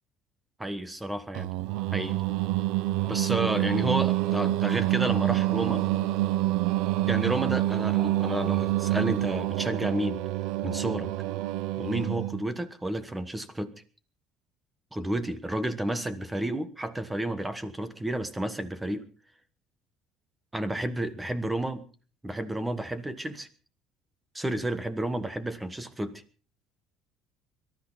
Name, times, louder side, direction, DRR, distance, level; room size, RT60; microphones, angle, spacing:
voice 1, 0.6-1.5 1.9-2.2 3.1-5.8 7.1-10.2 10.6-11.1 11.8-13.7 14.9-19.1 20.5-21.8 22.2-23.5 24.3-26.2, right 1 dB, 5° right, 11 dB, 1.3 m, -31 dB
Singing, 1.3-12.5, right 16 dB, 70° right, 0.7 m, -27 dB
24.5 x 13.0 x 4.1 m, 0.40 s
cardioid pair, 175°, 0 cm